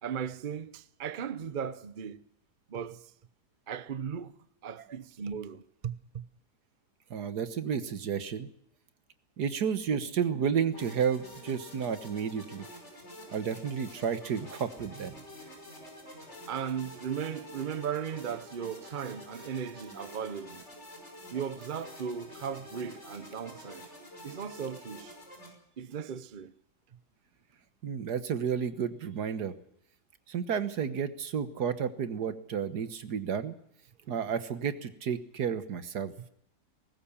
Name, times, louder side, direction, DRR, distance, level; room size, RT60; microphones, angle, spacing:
voice 1, 0.0-2.2 2.7-3.1 3.7-4.3 4.6-6.3 15.1-15.2 16.5-20.6 21.3-23.9 24.2-25.2 25.8-26.5 34.1-34.2, right 7 dB, 40° right, 0.7 m, -37 dB
voice 2, 7.1-8.5 9.4-12.7 13.3-15.1 27.8-29.5 30.3-33.6 34.1-36.1, right 7 dB, 70° right, 1.8 m, -31 dB
sound 1, 10.7-25.5, left 1 dB, 40° left, 6.1 m, -48 dB
20.0 x 18.0 x 7.2 m
omnidirectional pair, 1.8 m